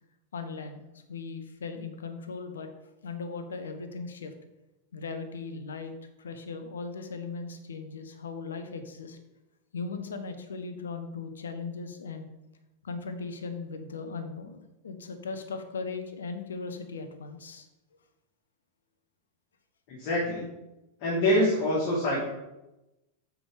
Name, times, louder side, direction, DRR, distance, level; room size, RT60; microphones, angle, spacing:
voice 1, 0.3-0.8 1.1-2.7 3.0-4.3 4.9-5.9 6.2-9.2 9.7-12.3 12.8-17.7, left 4 dB, 80° left, 7 dB, 0.9 m, -38 dB
voice 2, 19.9-20.5 21.0-22.2, left 1 dB, 55° left, -6 dB, 2.3 m, -25 dB
6.2 x 4.9 x 5.0 m, 0.98 s
hypercardioid pair, 95°, 0 cm